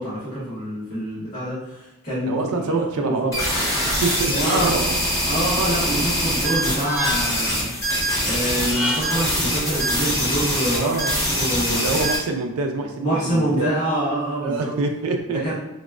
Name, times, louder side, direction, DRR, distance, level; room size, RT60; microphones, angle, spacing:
voice 1, 0.0-3.1 4.3-4.8 5.2-7.7 8.2-11.0 11.3-12.0 13.0-14.7 15.3-15.5, right 1 dB, 40° left, -11 dB, 1.3 m, -26 dB
voice 2, 2.3-5.0 10.8-11.2 11.7-13.7 14.4-15.5, right 3 dB, 85° right, 4 dB, 0.4 m, -26 dB
sound 1, 3.3-12.2, equal, 15° left, 0.8 m, -23 dB
sound 2, 6.3-7.5 8.5-9.4, left 2 dB, 5° right, 0.3 m, -29 dB
4.0 x 2.0 x 2.4 m, 0.93 s
head